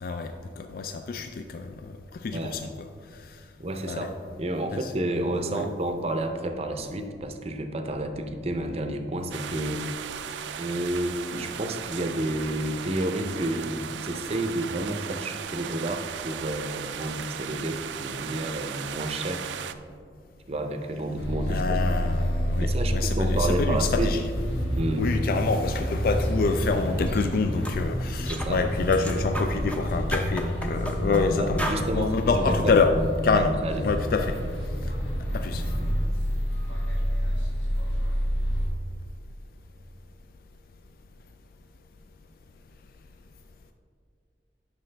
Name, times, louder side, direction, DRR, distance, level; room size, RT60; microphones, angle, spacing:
voice 1, 0.0-2.7 3.2-3.4 3.9-4.1 4.7-4.9 5.5-5.6 21.5-24.2 25.0-32.9 33.2-33.6 33.8-34.4 35.3-35.6, left 4 dB, 55° left, 7 dB, 0.3 m, -27 dB
voice 2, 3.6-4.1 4.4-10.2 10.6-19.5 20.5-22.1 22.6-24.1 24.8-25.1 28.3-28.6 31.4-32.7 33.3-33.8, right 1 dB, 35° right, 6 dB, 0.6 m, -30 dB
sound 1, 9.3-19.7, right 8 dB, 90° right, 0.4 m, -37 dB
sound 2, 21.2-38.7, equal, 85° left, 1.5 m, -28 dB
sound 3, 27.1-27.3 27.6-27.8 28.3-28.5 28.9-29.8 30.1-31.2 31.6-31.8, equal, 10° left, 0.6 m, -33 dB
9.5 x 5.9 x 3.3 m, 2.2 s
head